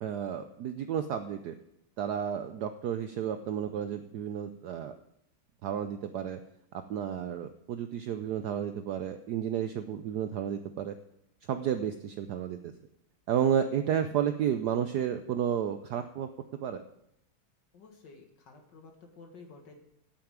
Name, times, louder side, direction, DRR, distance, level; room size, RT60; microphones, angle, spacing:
voice 1, 0.0-1.5 2.0-5.0 5.6-6.4 6.7-10.9 11.5-12.7 13.3-16.3 16.6-16.8, right 9 dB, 75° right, 9 dB, 0.9 m, -32 dB
voice 2, 17.7-19.7, left 4 dB, 60° left, 3 dB, 2.2 m, -52 dB
9.3 x 6.9 x 8.8 m, 0.81 s
omnidirectional pair, 2.3 m